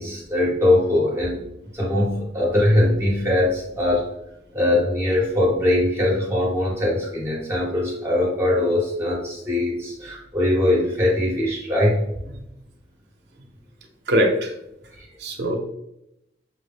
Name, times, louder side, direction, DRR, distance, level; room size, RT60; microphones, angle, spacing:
voice 1, 0.0-1.4 1.7-4.2 4.5-12.1 15.0-15.1, left 1 dB, 15° right, -5 dB, 1.0 m, -21 dB
voice 2, 14.1-14.5 15.2-15.6, equal, 75° right, 1 dB, 0.7 m, -21 dB
5.9 x 2.1 x 3.3 m, 0.84 s
head